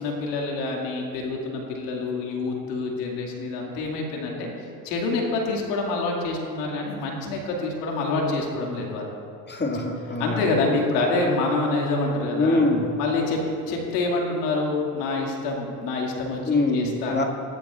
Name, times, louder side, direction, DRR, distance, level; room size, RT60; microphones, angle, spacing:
voice 1, 0.0-9.1 10.2-12.6 13.0-13.4 13.7-17.2, left 3 dB, 80° left, -1 dB, 2.2 m, -27 dB
voice 2, 9.5-10.5 12.3-13.0 16.5-17.2, left 2 dB, 20° left, 2 dB, 1.9 m, -24 dB
18.5 x 11.5 x 2.4 m, 2.5 s
hypercardioid pair, 75°, 47 cm